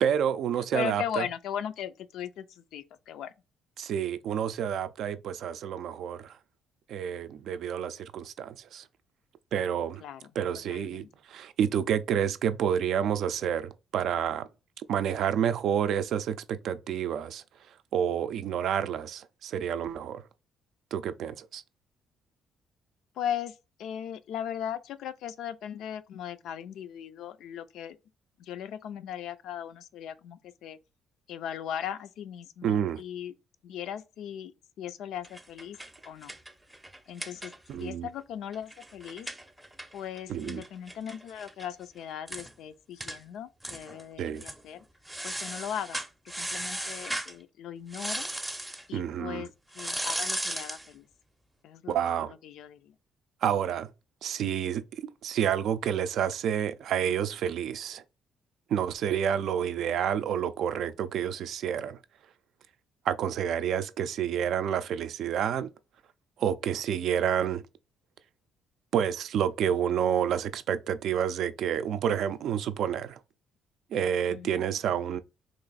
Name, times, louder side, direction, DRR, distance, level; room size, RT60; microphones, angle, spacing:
voice 1, 0.0-1.2 3.8-6.3 6.9-8.8 9.5-10.0 10.4-14.5 14.9-17.4 17.9-20.2 20.9-21.6 32.6-33.0 37.7-38.1 40.3-40.6 44.2-44.4 48.9-49.5 51.9-52.3 53.4-53.9 54.2-58.0 58.7-62.0 63.1-65.7 66.4-67.6 68.9-73.2 73.9-75.2, right 9 dB, 70° right, 0.4 m, -29 dB
voice 2, 0.7-3.3 10.0-10.3 10.7-11.1 23.2-28.0 28.4-30.8 31.3-33.3 33.6-35.8 36.0-36.3 37.1-37.5 37.8-39.3 39.9-44.8 45.2-46.0 46.4-48.3 48.9-49.5 49.7-51.1 51.6-52.9 74.3-74.6, left 9 dB, 75° left, 0.3 m, -38 dB
sound 1, 35.2-37.9 38.2-38.3 38.5-41.7 42.0-42.1 42.3-42.5 43.0-43.2 43.6-44.0 44.4-44.6 45.1-47.3 47.9-48.8 49.7-50.9, right 1 dB, 5° right, 0.5 m, -36 dB
3.0 x 2.5 x 3.9 m
cardioid pair, 85°, 0 cm